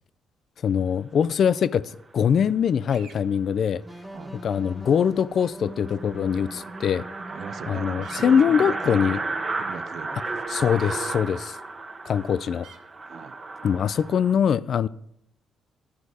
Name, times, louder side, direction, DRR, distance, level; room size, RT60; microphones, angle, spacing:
voice 1, 0.6-3.8 4.4-7.1 7.7-9.2 10.5-11.6 12.1-12.7 13.6-14.9, left 7 dB, 60° left, 0.3 m, -23 dB
sound 1, 2.9-3.2 5.4-5.5 8.0-8.4 10.8-10.9 12.6-12.8, right 5 dB, 85° right, 1.2 m, -48 dB
sound 2, 3.8-9.5, right 1 dB, ahead, 1.1 m, -42 dB
sound 3, 4.4-4.5 4.9-5.0 5.2-5.3 5.6-14.3, right 3 dB, 35° right, 0.9 m, -33 dB
voice 2, 7.3-10.3 13.0-13.4, right 7 dB, 65° right, 0.5 m, -40 dB
12.5 x 4.7 x 4.1 m
cardioid pair, 90°, 0 cm